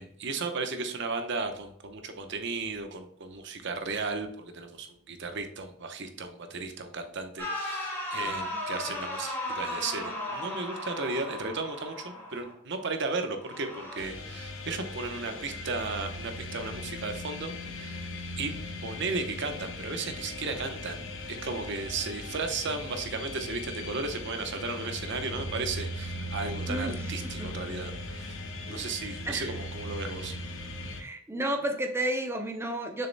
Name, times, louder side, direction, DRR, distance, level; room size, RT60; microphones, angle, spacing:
voice 1, 0.0-18.0 18.4-18.5 18.8-28.4 28.7-30.3, right 3 dB, 60° right, 6 dB, 0.9 m, -35 dB
sound 1, 7.4-12.5 13.4-14.0, left 1 dB, 10° left, 2.1 m, -36 dB
sound 2, 14.0-31.0, left 1 dB, 75° left, 1.1 m, -38 dB
voice 2, 26.7-27.5 28.7-28.8 29.3-29.6 31.0-33.1, right 1 dB, 15° right, 4 dB, 0.6 m, -32 dB
6.6 x 6.5 x 2.2 m, 0.66 s
head